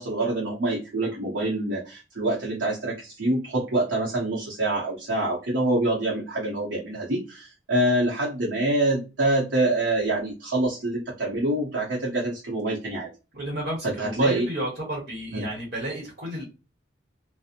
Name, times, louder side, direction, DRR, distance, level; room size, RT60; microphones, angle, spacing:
voice 1, 0.0-13.1 13.8-14.5 15.3-15.4, right 1 dB, 75° right, -4 dB, 0.7 m, -26 dB
voice 2, 13.3-16.4, right 1 dB, 50° right, -2 dB, 0.9 m, -31 dB
2.7 x 2.0 x 2.4 m, 0.29 s
head